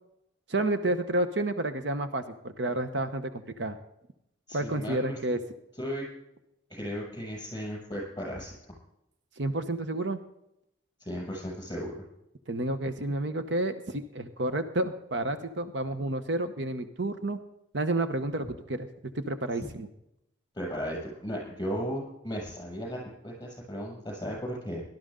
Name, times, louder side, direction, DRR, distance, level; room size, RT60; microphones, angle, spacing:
voice 1, 0.5-3.8 4.5-5.4 9.4-10.2 12.5-17.4 17.7-18.9 19.1-19.9, right 1 dB, 65° right, 10 dB, 1.0 m, -30 dB
voice 2, 4.5-5.2 5.8-6.0 6.7-8.5 11.0-11.9 20.5-24.8, equal, 20° left, -2 dB, 6.8 m, -35 dB
18.0 x 12.0 x 3.8 m, 0.82 s
head